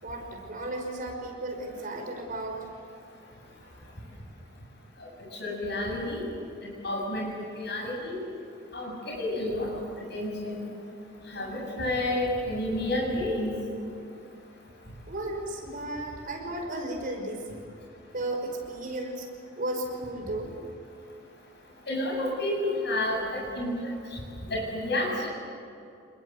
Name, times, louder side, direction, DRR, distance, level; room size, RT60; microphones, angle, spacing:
voice 1, 0.0-2.7 15.1-17.6 18.1-19.3 19.6-20.6, right 1 dB, 45° right, 2 dB, 5.3 m, -34 dB
voice 2, 5.4-6.3 6.6-8.2 8.7-9.8 10.1-10.7 11.3-13.5 21.9-23.9 24.4-25.3, left 1 dB, 60° left, -2 dB, 7.7 m, -30 dB
28.5 x 21.5 x 8.2 m, 2.5 s
head